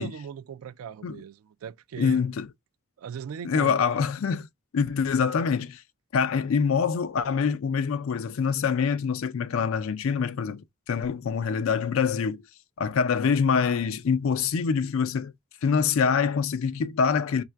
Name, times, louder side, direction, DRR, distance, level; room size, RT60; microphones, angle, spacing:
voice 1, 0.0-2.2 3.0-3.8, right 7 dB, 85° right, 0.3 m, -39 dB
voice 2, 2.0-2.5 3.4-4.5 4.7-5.8 6.1-12.4 12.8-15.3 15.6-17.4, left 6 dB, 70° left, 0.4 m, -25 dB
3.2 x 2.4 x 4.3 m
head